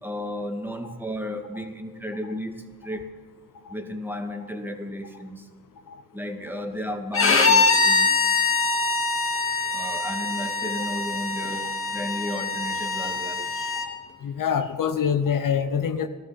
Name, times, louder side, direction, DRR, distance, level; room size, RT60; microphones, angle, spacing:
voice 1, 0.0-3.0 3.7-5.5 6.1-8.2 9.7-13.5, left 1 dB, 5° right, 4 dB, 2.3 m, -33 dB
Bowed string instrument, 7.1-13.9, left 4 dB, 35° left, 2.3 m, -23 dB
voice 2, 13.9-16.1, left 7 dB, 55° left, 9 dB, 1.0 m, -26 dB
17.5 x 13.0 x 6.0 m, 1.5 s
supercardioid pair, 65°, 38 cm